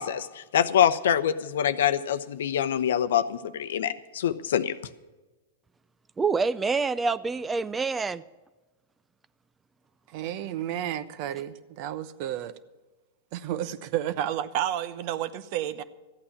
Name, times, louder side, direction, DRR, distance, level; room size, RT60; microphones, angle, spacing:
voice 1, 0.0-4.7, left 9 dB, 70° left, 0.7 m, -25 dB
voice 2, 6.2-8.2, right 4 dB, 15° right, 0.4 m, -26 dB
voice 3, 10.1-12.5 13.3-15.8, right 11 dB, 50° right, 0.9 m, -31 dB
14.0 x 8.7 x 7.2 m
hypercardioid pair, 105°, 0 cm